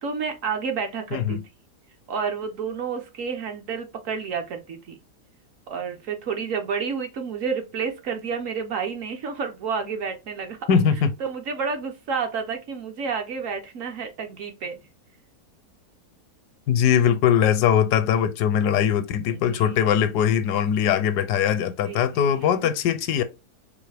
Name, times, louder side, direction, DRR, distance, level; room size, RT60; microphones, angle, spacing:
voice 1, 0.0-1.4 2.1-5.0 5.7-10.6 11.2-14.8 19.3-19.8 21.8-22.5, right 5 dB, 65° right, 0.9 m, -30 dB
voice 2, 1.1-1.4 10.7-11.1 16.7-23.2, left 8 dB, 80° left, 1.1 m, -21 dB
4.6 x 2.6 x 3.2 m
omnidirectional pair, 1.7 m